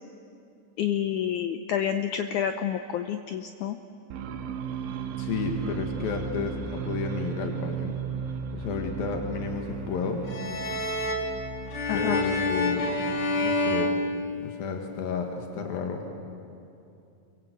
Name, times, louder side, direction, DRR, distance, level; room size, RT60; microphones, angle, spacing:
voice 1, 0.8-3.8 11.9-12.2, left 9 dB, 75° left, 7 dB, 2.0 m, -29 dB
sound 1, 4.1-13.7, right 7 dB, 85° right, 2.8 m, -36 dB
voice 2, 5.2-8.0 8.5-10.3 11.9-12.9 13.4-14.0 14.4-16.0, left 5 dB, 90° left, 3 dB, 3.5 m, -32 dB
sound 2, 10.3-14.9, left 2 dB, 45° left, 2.6 m, -28 dB
29.0 x 23.0 x 8.1 m, 2.6 s
omnidirectional pair, 4.0 m